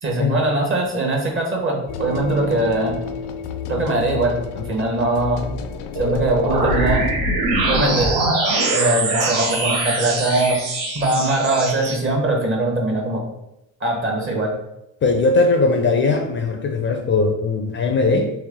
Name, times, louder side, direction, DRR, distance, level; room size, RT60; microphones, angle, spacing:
voice 1, 0.0-3.0 3.7-4.4 4.7-5.5 5.9-7.1 7.7-8.1 8.7-10.6 10.9-13.2 13.8-14.5, right 2 dB, 35° right, 0 dB, 1.2 m, -21 dB
sound 1, 1.9-7.1, left 6 dB, 85° left, 0.5 m, -31 dB
sound 2, 6.0-11.9, right 2 dB, 85° right, 1.0 m, -22 dB
voice 2, 15.0-18.3, left 3 dB, 30° left, 3 dB, 0.5 m, -19 dB
3.2 x 2.9 x 3.6 m, 0.88 s
cardioid pair, 105°, 38 cm